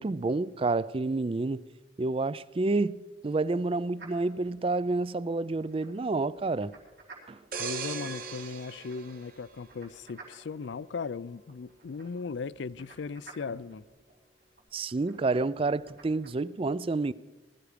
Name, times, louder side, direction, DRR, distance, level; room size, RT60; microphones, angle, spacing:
voice 1, 0.0-1.6 2.0-3.0 3.2-6.7 7.3-7.4 14.7-17.1, right 3 dB, 30° right, 0.4 m, -29 dB
sound 1, 4.0-16.3, right 3 dB, 70° right, 4.3 m, -55 dB
sound 2, 7.5-10.2 10.7-10.9, right 5 dB, 50° right, 1.8 m, -39 dB
voice 2, 7.6-13.8, left 5 dB, 80° left, 0.4 m, -37 dB
20.0 x 13.0 x 5.1 m
head